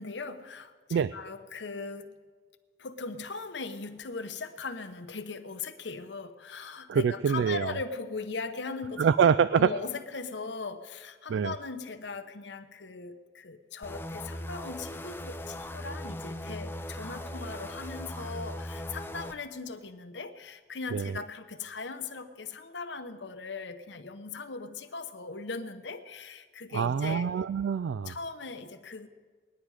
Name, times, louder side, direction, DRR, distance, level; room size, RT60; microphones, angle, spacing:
voice 1, 0.0-2.1 2.8-9.1 9.5-27.3 28.0-29.1, left 4 dB, 80° left, 9 dB, 0.9 m, -39 dB
voice 2, 6.9-7.7 9.0-9.7 11.3-11.5 20.9-21.1 26.7-28.1, right 7 dB, 85° right, 15 dB, 0.3 m, -25 dB
sound 1, 13.8-19.4, left 1 dB, 10° left, 0.4 m, -39 dB
20.5 x 10.5 x 4.8 m, 1.5 s
head